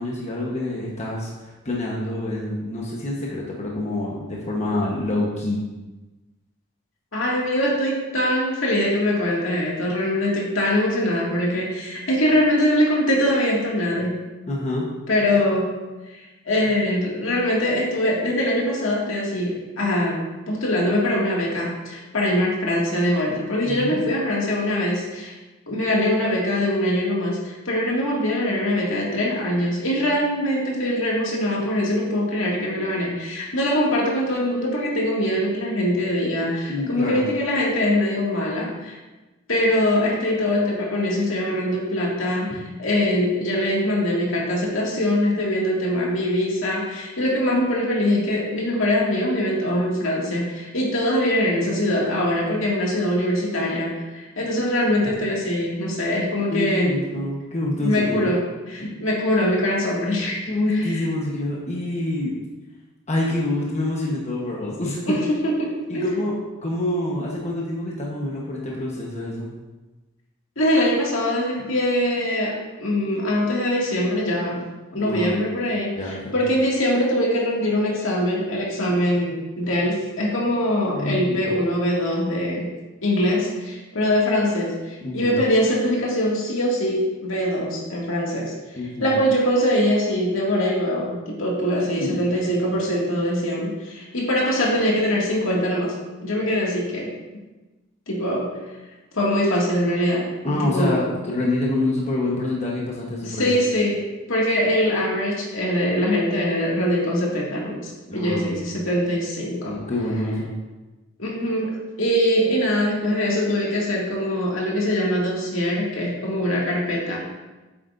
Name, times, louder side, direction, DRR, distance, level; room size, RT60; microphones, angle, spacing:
voice 1, 0.0-5.6 14.5-14.9 23.6-24.0 36.7-37.2 56.5-58.3 60.5-62.3 63.1-65.1 65.9-66.3 66.6-69.5 75.0-75.4 76.0-76.3 80.9-81.5 85.0-85.4 88.8-89.1 92.0-92.2 100.4-103.6 108.1-108.6 109.6-110.5, left 1 dB, 35° left, -3 dB, 1.1 m, -26 dB
voice 2, 7.1-14.3 15.1-15.7 16.1-25.3 25.7-39.0 39.5-57.0 57.8-60.5 65.1-66.1 70.6-74.6 74.9-82.7 83.0-96.0 96.2-97.1 98.1-98.6 99.1-101.0 103.2-104.0 104.3-109.8 111.2-117.2, left 1 dB, 75° left, -4 dB, 2.2 m, -23 dB
8.5 x 8.4 x 2.6 m, 1.1 s
head